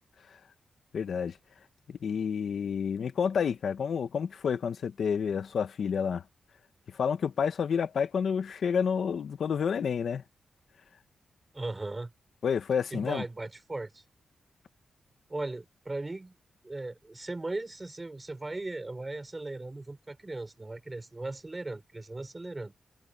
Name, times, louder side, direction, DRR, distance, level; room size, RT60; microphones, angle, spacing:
voice 1, 0.9-1.4 1.9-6.2 6.9-10.2 12.4-13.2, left 7 dB, 70° left, 1.2 m, -29 dB
voice 2, 11.5-12.1 12.9-14.0 15.3-16.4 16.6-22.7, right 2 dB, 20° right, 5.3 m, -37 dB
wide cardioid pair, 125°, 0 cm